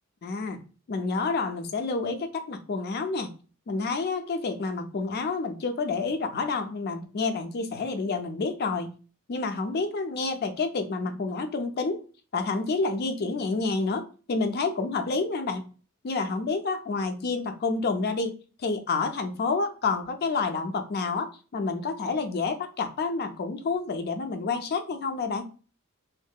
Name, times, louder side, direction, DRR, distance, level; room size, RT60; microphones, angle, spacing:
voice 1, 0.2-0.6 0.9-3.3 3.7-8.9 9.3-12.0 12.3-15.7 16.0-18.3 18.6-25.5, left 4 dB, 45° left, 7 dB, 0.4 m, -29 dB
2.7 x 2.5 x 2.2 m, 0.37 s
head